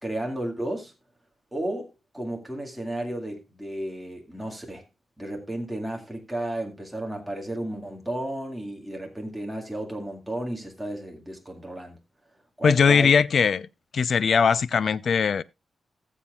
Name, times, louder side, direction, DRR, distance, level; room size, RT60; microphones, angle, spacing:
voice 1, 0.0-0.9 1.5-1.9 2.1-4.8 5.2-12.0 12.6-13.1, right 1 dB, ahead, 2.0 m, -33 dB
voice 2, 12.6-13.7 13.9-15.4, left 6 dB, 60° left, 0.4 m, -20 dB
18.5 x 7.3 x 2.4 m
wide cardioid pair, 150°, 0 cm